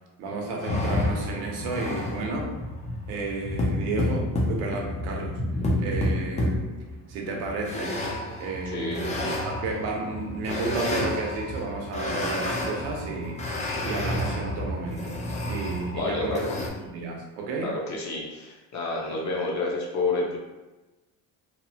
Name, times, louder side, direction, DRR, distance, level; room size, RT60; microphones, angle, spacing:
voice 1, 0.2-2.5 3.1-5.4 5.8-6.7 7.1-8.0 8.4-17.7 19.1-19.2, right 3 dB, 85° right, 0 dB, 0.7 m, -32 dB
sound 1, 0.6-16.7, left 1 dB, 20° left, 0.4 m, -30 dB
voice 2, 8.7-9.0 15.9-16.6 17.6-20.4, left 3 dB, 45° left, -2 dB, 0.7 m, -29 dB
2.8 x 2.1 x 2.7 m, 1.1 s
cardioid pair, 115°, 38 cm